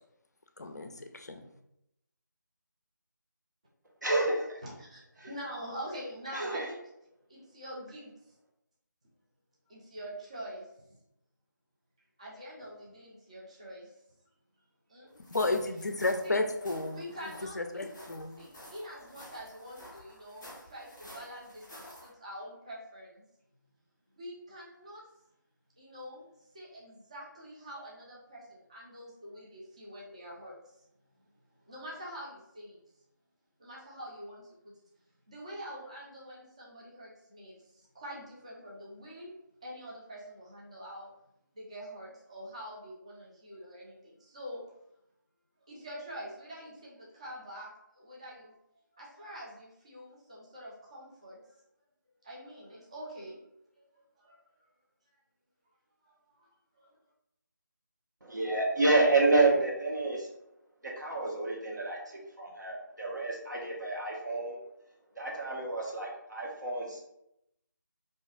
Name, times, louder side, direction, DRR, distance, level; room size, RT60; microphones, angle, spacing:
voice 1, 0.6-1.4 15.3-17.0 17.6-18.3, left 2 dB, 55° left, 5 dB, 0.4 m, -32 dB
voice 2, 4.0-4.6 5.2-5.3 6.3-6.7 58.2-60.3 60.8-64.6 65.1-67.0, right 2 dB, 65° right, -2 dB, 0.9 m, -29 dB
voice 3, 4.6-6.8 7.3-8.4 9.7-11.0 12.2-13.9 14.9-15.1 16.2-16.4 16.9-17.9 18.4-23.2 24.1-25.1 25.8-30.8 31.5-32.8 33.6-34.7 35.3-39.3 39.6-41.1 41.5-44.7 45.6-48.6 48.9-51.6 52.2-53.4 53.8-53.9 54.2-54.4 56.0-56.9, equal, 20° right, -5 dB, 0.4 m, -45 dB
sound 1, 15.2-22.1, equal, 5° left, 0.7 m, -51 dB
2.5 x 2.3 x 3.6 m, 0.81 s
figure-of-eight pair, 160°, 11 cm